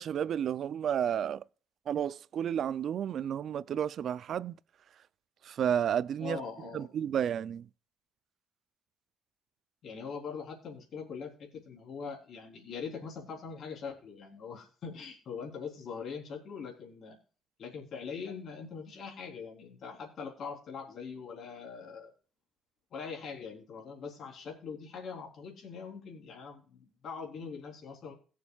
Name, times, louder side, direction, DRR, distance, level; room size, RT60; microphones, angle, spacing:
voice 1, 0.0-1.4 1.9-4.6 5.4-6.4 6.7-7.7, right 9 dB, 45° right, 0.4 m, -31 dB
voice 2, 6.2-6.9 9.8-17.2 17.6-22.1 22.9-28.1, left 5 dB, 45° left, 3.5 m, -42 dB
21.5 x 7.2 x 2.3 m
cardioid pair, 175°, 0 cm